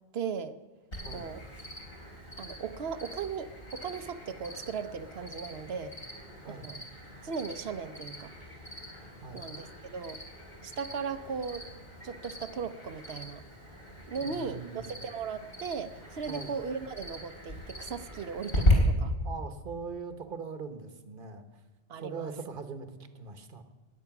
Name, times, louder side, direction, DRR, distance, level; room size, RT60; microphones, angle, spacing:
voice 1, 0.1-0.6 1.1-1.4 2.4-6.0 6.4-6.8 7.2-8.3 9.3-10.2 10.6-11.6 12.0-13.4 14.1-19.2 21.9-22.3, right 6 dB, 75° right, 12 dB, 1.0 m, -37 dB
Cricket, 0.9-18.7, equal, 65° left, 4.0 m, -38 dB
voice 2, 6.4-6.8 9.2-9.5 14.1-15.0 16.3-16.5 19.2-21.4 22.0-23.6, right 5 dB, 55° right, 9 dB, 1.3 m, -41 dB
20.5 x 8.6 x 5.9 m, 1.3 s
omnidirectional pair, 1.1 m